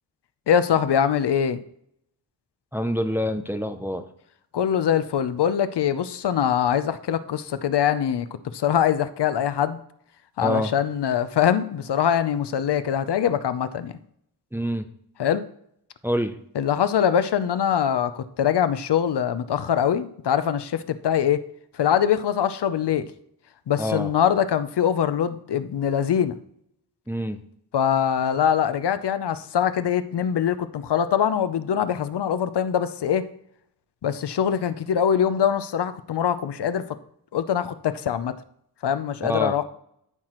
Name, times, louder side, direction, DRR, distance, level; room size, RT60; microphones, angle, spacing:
voice 1, 0.5-1.6 4.5-8.3 8.5-9.8 10.4-13.9 15.2-15.4 16.5-21.4 21.7-23.1 23.7-26.4 27.7-33.3 34.0-36.9 37.3-38.4 38.8-39.6, left 9 dB, 80° left, 12 dB, 0.7 m, -23 dB
voice 2, 2.7-4.0 10.4-10.7 14.5-14.9 16.0-16.4 23.8-24.1 27.1-27.4 39.2-39.6, equal, 5° right, 7 dB, 0.5 m, -26 dB
13.5 x 5.8 x 3.0 m, 0.71 s
wide cardioid pair, 160°, 40 cm